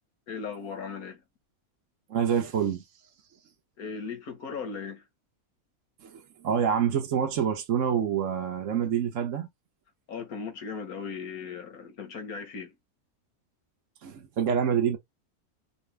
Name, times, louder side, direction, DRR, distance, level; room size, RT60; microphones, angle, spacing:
voice 1, 0.3-1.2 3.8-5.0 10.1-12.7, left 5 dB, 80° left, 1.8 m, -37 dB
voice 2, 2.1-2.8 6.0-9.5 14.0-15.0, right 8 dB, 60° right, 1.2 m, -27 dB
4.8 x 2.9 x 3.3 m
omnidirectional pair, 1.5 m